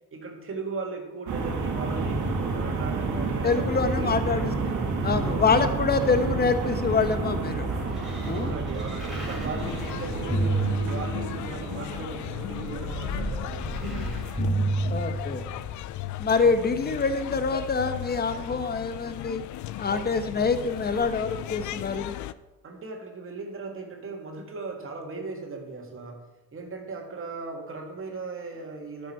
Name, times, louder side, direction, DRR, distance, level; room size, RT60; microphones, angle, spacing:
voice 1, 0.1-4.5 5.2-5.8 8.3-15.2 22.6-29.1, right 3 dB, 45° right, 1 dB, 2.1 m, -38 dB
sound 1, 1.3-13.6, right 3 dB, 75° right, 1.9 m, -30 dB
voice 2, 3.4-4.5 5.0-7.7 8.3-8.5 14.9-15.5 16.2-19.4 19.8-22.1, left 4 dB, 30° left, 9 dB, 1.0 m, -25 dB
sound 2, 7.0-11.6 12.3-15.6 16.4-16.5, right 2 dB, ahead, 3.7 m, -31 dB
sound 3, 9.6-22.3, left 14 dB, 75° left, 0.5 m, -36 dB
11.5 x 6.6 x 4.4 m, 1.1 s
cardioid pair, 90°, 30 cm